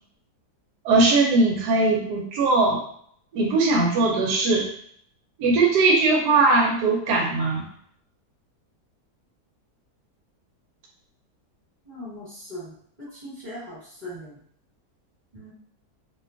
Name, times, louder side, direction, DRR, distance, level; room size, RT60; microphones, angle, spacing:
voice 1, 0.8-2.8 3.3-4.7 5.4-7.7, right 3 dB, 80° right, -1 dB, 1.2 m, -20 dB
voice 2, 11.9-12.7 13.2-14.3 15.3-15.5, equal, 30° right, -10 dB, 1.3 m, -39 dB
2.7 x 2.2 x 2.4 m, 0.63 s
omnidirectional pair, 1.7 m